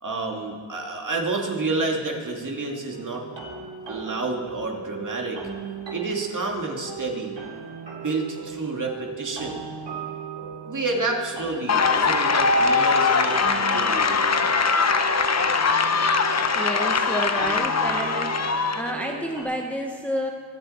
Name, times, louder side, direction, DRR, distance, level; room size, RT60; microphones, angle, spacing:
voice 1, 0.0-3.3 3.9-5.4 5.9-7.4 8.0-9.7 10.7-14.5, right 3 dB, 40° right, 0 dB, 2.7 m, -29 dB
sound 1, 2.9-19.4, right 5 dB, 60° right, 3.1 m, -37 dB
sound 2, 11.7-18.9, left 4 dB, 30° left, 0.9 m, -21 dB
voice 2, 16.5-18.3 18.7-20.3, equal, 5° left, 1 dB, 1.1 m, -29 dB
23.0 x 8.0 x 4.4 m, 2.1 s
cardioid pair, 70°, 49 cm